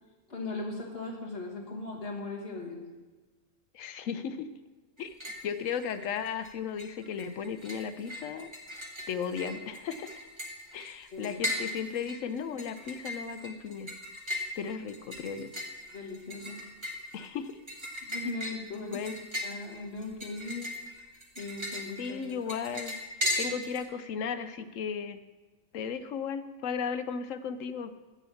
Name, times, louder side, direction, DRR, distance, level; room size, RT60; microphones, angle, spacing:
voice 1, 0.3-2.8 11.1-11.4 15.9-16.6 18.0-19.0 19.4-20.7 21.4-22.5, left 3 dB, 50° left, -3 dB, 2.2 m, -38 dB
voice 2, 3.7-4.5 5.0-5.1 5.4-8.5 9.1-10.2 10.7-13.9 14.6-15.5 17.1-17.6 18.9-19.2 22.0-23.0 23.4-25.2 25.7-27.9, left 6 dB, 75° left, 11 dB, 1.0 m, -35 dB
sound 1, 5.0-5.5 5.8-6.5 6.8-23.8, left 1 dB, 20° right, 1.3 m, -38 dB
8.5 x 7.0 x 7.0 m, 1.3 s
omnidirectional pair, 1.4 m